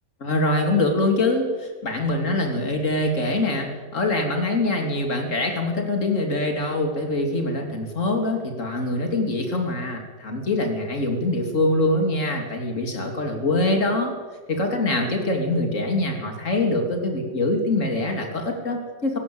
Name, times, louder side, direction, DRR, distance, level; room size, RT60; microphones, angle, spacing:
voice 1, 0.2-14.1 14.5-19.2, left 2 dB, 45° left, 3 dB, 3.4 m, -24 dB
19.0 x 17.5 x 8.8 m, 1.5 s
omnidirectional pair, 1.8 m